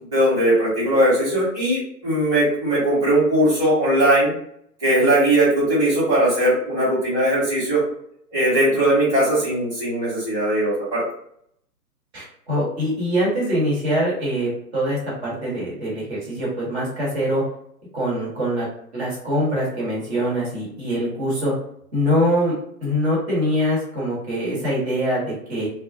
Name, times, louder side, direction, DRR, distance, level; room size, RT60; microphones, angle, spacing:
voice 1, 0.1-4.3 4.8-7.8 8.3-11.0, right 1 dB, 5° right, -14 dB, 1.2 m, -19 dB
voice 2, 12.1-17.4 17.9-18.7 18.9-21.5 21.9-25.7, equal, 40° right, -6 dB, 1.3 m, -23 dB
2.4 x 2.3 x 2.6 m, 0.68 s
figure-of-eight pair, 125°, 49 cm